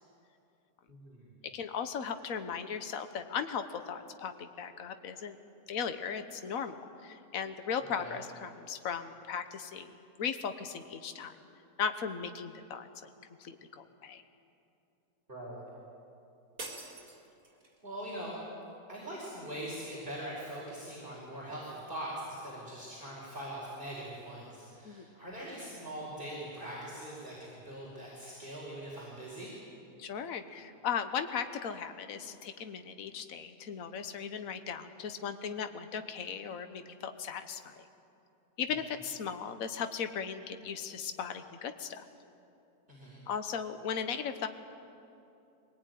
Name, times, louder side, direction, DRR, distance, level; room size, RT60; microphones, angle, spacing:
voice 1, 0.9-1.3 8.0-8.1 15.3-15.6 17.8-18.4 18.9-29.6 42.9-43.2, right 1 dB, 30° right, -7 dB, 4.9 m, -42 dB
voice 2, 1.5-5.4 5.7-11.3 11.8-12.9 13.4-14.2 24.8-25.1 30.0-37.8 38.6-42.1 43.3-44.5, left 7 dB, 60° left, 9 dB, 1.5 m, -37 dB
sound 1, 16.6-17.8, right 2 dB, 55° right, 3.5 m, -45 dB
23.0 x 19.0 x 9.4 m, 2.8 s
omnidirectional pair, 1.8 m